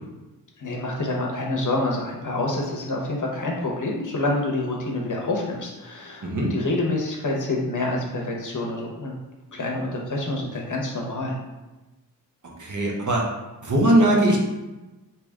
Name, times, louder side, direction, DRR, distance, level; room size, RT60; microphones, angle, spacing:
voice 1, 0.6-9.1 9.5-11.4, left 2 dB, 55° left, -1 dB, 1.0 m, -27 dB
voice 2, 6.2-6.5 12.6-13.2 13.6-14.4, right 1 dB, 55° right, -1 dB, 1.0 m, -20 dB
4.9 x 2.9 x 3.6 m, 1.1 s
wide cardioid pair, 135°, 37 cm